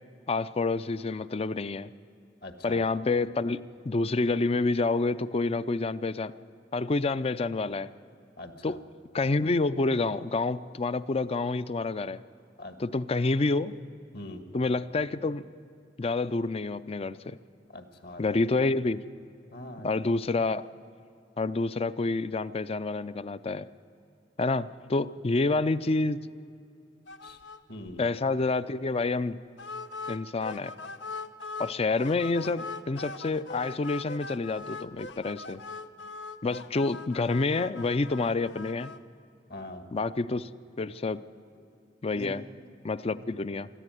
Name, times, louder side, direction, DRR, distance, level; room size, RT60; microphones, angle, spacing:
voice 1, 0.3-1.9 2.6-6.3 6.7-7.9 8.6-8.8 9.1-12.2 12.8-13.7 14.5-15.5 16.0-17.4 18.2-19.0 19.8-20.6 21.4-23.7 24.4-26.3 28.0-29.4 30.1-30.7 31.6-35.6 36.4-38.9 39.9-40.5 40.8-41.2 42.0-42.4 42.8-43.7, left 3 dB, 35° left, 15 dB, 0.5 m, -28 dB
voice 2, 2.4-2.8 8.4-8.8 12.6-12.8 14.1-14.4 17.7-18.4 19.5-19.9 27.2-27.4 27.7-28.0 39.5-39.9 42.1-42.3, left 1 dB, 60° left, 8 dB, 1.8 m, -42 dB
sound 1, 27.1-27.6 27.9-28.0 28.3-28.4 29.6-31.7 32.0-39.0, left 3 dB, 90° left, 0.8 m, -41 dB
22.5 x 14.0 x 9.2 m, 2.5 s
head